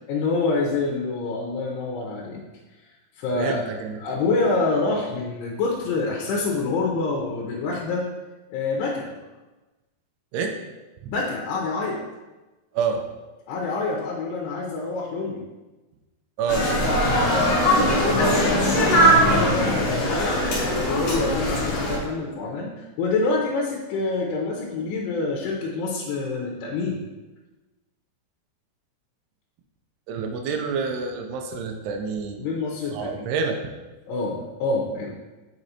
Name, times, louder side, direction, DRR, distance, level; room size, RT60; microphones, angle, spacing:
voice 1, 0.1-2.4 3.2-3.7 4.0-8.1 8.5-9.1 11.1-12.0 13.5-15.4 18.0-27.0 32.4-33.3 34.1-35.1, left 3 dB, 80° left, -2 dB, 2.8 m, -26 dB
voice 2, 3.3-4.0 10.3-10.6 11.0-11.1 12.7-13.0 16.4-16.7 30.1-32.5 32.9-33.6, right 5 dB, 85° right, 4 dB, 2.6 m, -27 dB
sound 1, 16.5-22.0, equal, 60° left, 1.8 m, -20 dB
7.9 x 5.2 x 2.8 m, 1.1 s
omnidirectional pair, 4.8 m